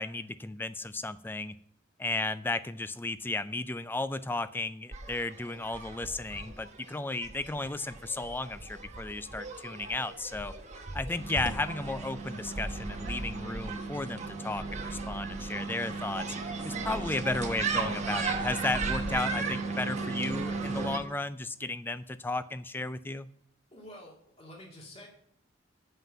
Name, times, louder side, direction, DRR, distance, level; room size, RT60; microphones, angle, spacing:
voice 1, 0.0-1.5 2.0-10.5 10.9-16.3 16.6-23.3, left 2 dB, 10° left, 13 dB, 0.3 m, -34 dB
sound 1, 4.9-21.0, right 3 dB, 35° right, 1.1 m, -35 dB
voice 2, 23.7-25.1, left 1 dB, 30° left, -2 dB, 2.2 m, -48 dB
7.7 x 5.7 x 7.2 m, 0.68 s
head